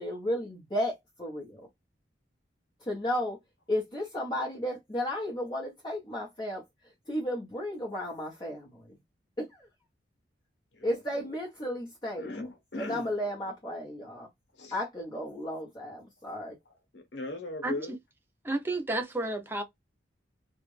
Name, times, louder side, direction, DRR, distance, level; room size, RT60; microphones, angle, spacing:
voice 1, 0.0-1.7 2.8-3.4 3.7-6.6 7.1-8.9 9.4-9.7 10.8-12.3 12.7-14.3 14.7-16.5, left 1 dB, 25° left, 1.2 m, -33 dB
voice 2, 12.2-13.1 14.6-14.8 16.9-17.9, left 2 dB, 75° left, 1.3 m, -38 dB
voice 3, 18.4-19.6, right 2 dB, 10° right, 0.6 m, -31 dB
3.3 x 2.5 x 3.3 m
head